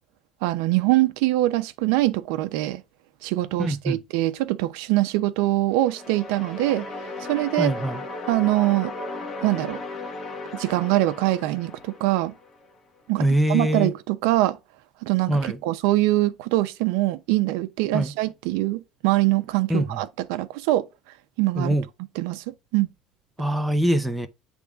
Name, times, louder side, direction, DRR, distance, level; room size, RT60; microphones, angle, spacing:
voice 1, 0.4-2.8 3.2-6.9 7.3-7.7 8.3-8.9 9.4-9.8 10.5-12.3 13.1-14.6 15.0-20.9 21.4-21.7 22.2-22.4 22.7-22.9, right 17 dB, 85° right, 0.7 m, -23 dB
voice 2, 3.6-4.0 7.6-8.0 13.2-13.9 15.3-15.6 17.9-18.1 19.7-20.0 21.5-21.8 23.4-24.3, right 1 dB, ahead, 0.6 m, -23 dB
sound 1, 5.7-12.7, left 2 dB, 30° left, 1.1 m, -36 dB
8.6 x 3.5 x 3.5 m
cardioid pair, 165°, 0 cm